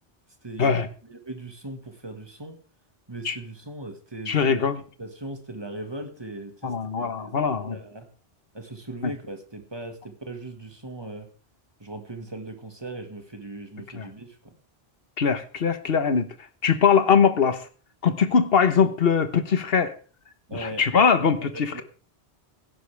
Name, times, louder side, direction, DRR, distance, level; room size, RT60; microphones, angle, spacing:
voice 1, 0.4-2.6 3.1-4.6 5.0-8.1 8.5-11.3 11.8-14.5 20.5-20.8 21.4-21.8, right 2 dB, 25° right, 5 dB, 1.8 m, -39 dB
voice 2, 4.3-4.8 6.6-7.7 9.0-9.1 13.9-14.1 15.2-16.3 16.6-17.6 18.0-19.9 20.5-21.8, left 6 dB, 65° left, 10 dB, 1.3 m, -21 dB
17.0 x 10.0 x 3.4 m, 0.40 s
omnidirectional pair, 1.1 m